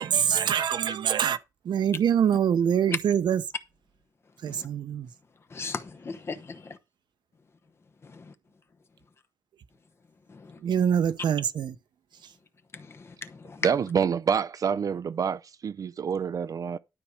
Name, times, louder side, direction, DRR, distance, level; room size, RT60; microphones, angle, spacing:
voice 1, 0.0-1.4 1.6-3.4 4.4-5.1 10.6-11.8, right 8 dB, 80° right, 1.0 m, -24 dB
voice 2, 5.5-6.8 8.0-8.3 10.3-10.6 12.7-13.7, left 4 dB, 35° left, 0.9 m, -36 dB
voice 3, 13.6-16.8, right 7 dB, 50° right, 0.5 m, -27 dB
12.0 x 4.8 x 6.5 m
wide cardioid pair, 155°, 8 cm